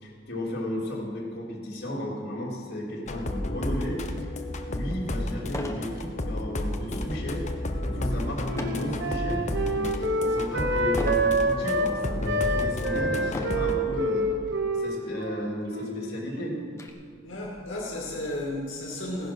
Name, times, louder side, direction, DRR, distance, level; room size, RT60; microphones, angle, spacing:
voice 1, 0.0-4.4 4.7-7.4 7.9-14.3 14.7-16.6, equal, 55° left, -3 dB, 3.3 m, -34 dB
sound 1, 3.1-13.8, left 1 dB, 35° left, 0.9 m, -32 dB
sound 2, 4.5-4.6 5.5-5.9 6.3-6.7 8.6-8.9 9.5-10.0 11.0-11.3 12.1-12.2 13.3-13.7 14.8-14.9 15.2-15.3 15.8-16.9, left 1 dB, 15° left, 1.1 m, -36 dB
Wind instrument woodwind instrument, 7.9-11.9 12.2-16.7, right 1 dB, 60° right, 1.2 m, -28 dB
voice 2, 17.2-19.3, left 1 dB, 80° left, -3 dB, 2.3 m, -33 dB
16.5 x 10.5 x 6.2 m, 2.1 s
head